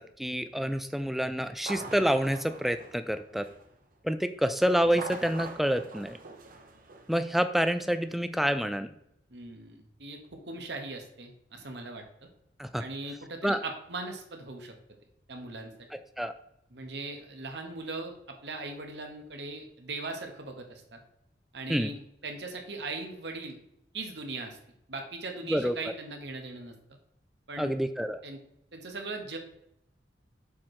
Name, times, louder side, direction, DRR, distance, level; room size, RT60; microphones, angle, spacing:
voice 1, 0.2-3.5 4.0-6.2 7.1-8.9 12.6-12.8 13.4-13.6 16.2-16.3 21.7-21.9 25.5-25.7 27.6-28.2, equal, ahead, 10 dB, 0.3 m, -28 dB
sound 1, 1.5-3.8 4.8-7.3, right 3 dB, 50° right, 0.8 m, -44 dB
voice 2, 9.3-12.0 12.8-14.7 15.3-15.7 16.7-21.0 21.5-23.6 23.9-24.6 24.9-26.7 27.5-27.8 28.2-28.4 28.7-29.4, right 3 dB, 70° right, 4 dB, 1.2 m, -39 dB
7.3 x 4.5 x 3.1 m, 0.78 s
head